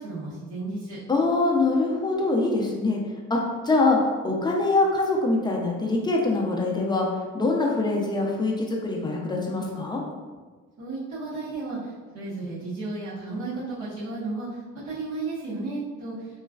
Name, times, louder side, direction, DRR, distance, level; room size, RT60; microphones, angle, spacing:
voice 1, 0.0-1.0 10.8-11.8 12.1-14.5 14.8-16.1, right 3 dB, 65° right, -14 dB, 1.1 m, -33 dB
voice 2, 1.1-3.0 3.3-4.0 4.2-7.1 7.3-10.0, left 3 dB, 15° left, -1 dB, 0.5 m, -24 dB
3.1 x 2.3 x 2.3 m, 1.4 s
cardioid pair, 90°, 30 cm